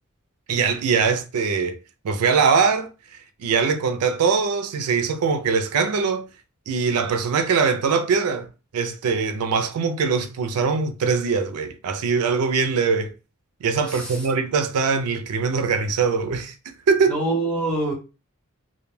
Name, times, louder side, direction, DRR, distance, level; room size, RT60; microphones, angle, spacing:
voice 1, 0.5-1.8 2.0-2.9 3.4-6.3 6.7-8.5 8.7-13.1 13.6-16.5 16.9-17.1, right 5 dB, 85° right, 0.4 m, -22 dB
voice 2, 13.9-14.3 17.1-17.9, right 2 dB, 5° left, 0.8 m, -25 dB
2.2 x 2.1 x 3.1 m
head